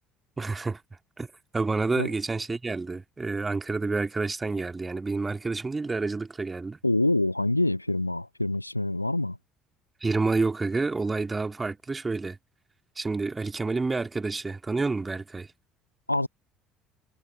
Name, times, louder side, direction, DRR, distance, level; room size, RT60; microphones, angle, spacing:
voice 1, 0.4-0.8 1.2-1.3 1.5-6.8 10.0-12.4 13.0-15.5, right 3 dB, 20° right, 2.4 m, -29 dB
voice 2, 6.8-9.4 16.1-16.3, left 1 dB, 90° left, 0.7 m, -26 dB
figure-of-eight pair, 55°, 0 cm